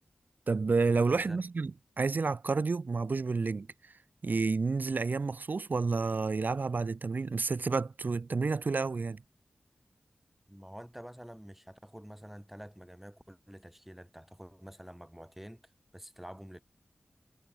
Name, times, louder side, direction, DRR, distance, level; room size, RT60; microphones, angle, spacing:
voice 1, 0.5-3.7 4.2-9.2, right 4 dB, 60° right, 0.7 m, -30 dB
voice 2, 1.1-1.4 10.5-16.6, equal, 5° right, 4.3 m, -48 dB
cardioid pair, 45°, 3 cm